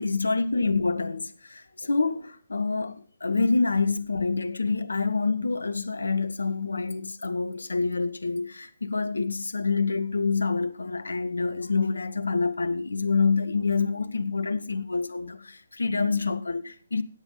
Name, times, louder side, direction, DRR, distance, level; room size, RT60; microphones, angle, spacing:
voice 1, 0.0-17.0, left 4 dB, 70° left, 0.9 m, -27 dB
16.5 x 9.0 x 3.9 m
figure-of-eight pair, 135°, 0 cm